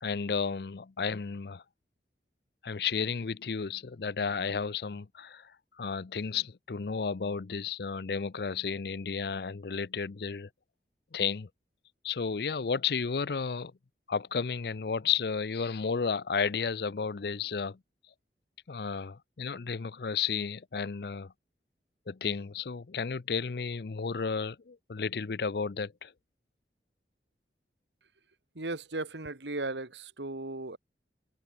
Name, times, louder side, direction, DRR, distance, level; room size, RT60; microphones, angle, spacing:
voice 1, 0.0-1.6 2.6-5.5 5.8-10.5 11.1-11.5 12.0-13.7 14.1-17.8 18.7-21.3 22.1-26.1, left 5 dB, 60° left, 0.5 m, -32 dB
voice 2, 28.6-30.8, right 2 dB, 85° right, 2.2 m, -36 dB
head